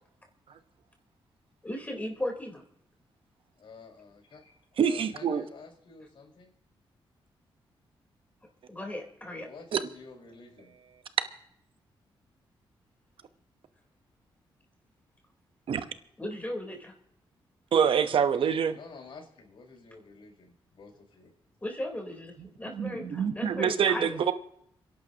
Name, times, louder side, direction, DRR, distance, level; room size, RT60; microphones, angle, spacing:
voice 1, 1.6-2.6 8.7-9.5 16.2-16.9 21.6-24.2, left 1 dB, 15° left, 3.8 m, -36 dB
voice 2, 3.6-6.5 9.4-10.7 18.7-21.3, left 4 dB, 65° left, 5.1 m, -50 dB
voice 3, 4.8-5.4 9.7-9.8 15.7-15.8 17.7-18.8 22.7-24.3, right 7 dB, 70° right, 1.0 m, -25 dB
28.0 x 11.5 x 2.9 m
cardioid pair, 75°, 9 cm